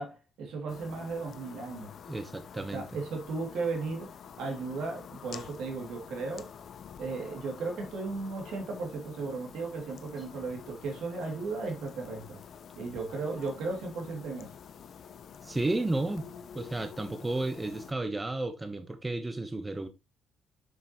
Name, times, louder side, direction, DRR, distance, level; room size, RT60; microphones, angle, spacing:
voice 1, 0.0-1.9 2.6-6.5 7.0-12.4 12.8-14.5, right 3 dB, 80° right, 2.7 m, -36 dB
sound 1, 0.7-17.9, left 7 dB, 60° left, 0.7 m, -48 dB
voice 2, 2.1-2.9 15.4-16.3 16.5-19.9, right 2 dB, 15° right, 1.1 m, -32 dB
7.3 x 6.7 x 3.1 m
cardioid pair, 90°, 0 cm